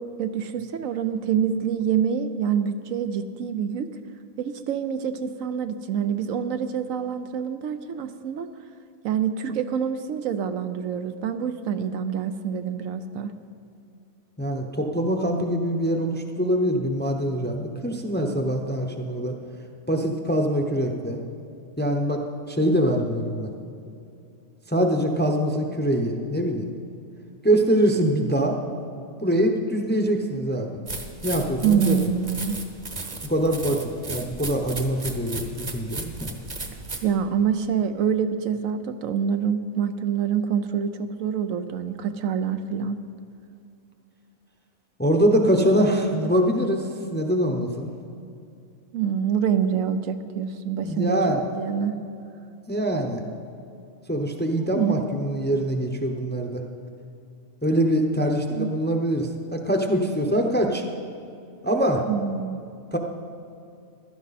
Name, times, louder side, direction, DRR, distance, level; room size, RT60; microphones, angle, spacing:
voice 1, 0.0-3.9 4.4-8.5 9.0-13.3 31.6-32.6 37.0-43.0 48.9-51.2 51.6-51.9 54.5-55.0 58.3-58.7 62.1-62.6, right 7 dB, 75° right, 9 dB, 1.0 m, -26 dB
voice 2, 14.4-19.4 19.9-21.2 21.8-22.2 22.5-23.5 24.7-26.7 27.4-28.6 29.2-30.8 31.2-32.0 33.3-36.3 45.0-47.9 50.8-51.4 52.7-53.2 54.1-56.6 57.6-60.8 61.6-62.0 62.9-63.0, equal, 10° left, 2 dB, 0.7 m, -23 dB
sound 1, 30.9-37.1, right 3 dB, 35° right, 1.1 m, -35 dB
15.5 x 12.0 x 4.2 m, 2.5 s
omnidirectional pair, 1.4 m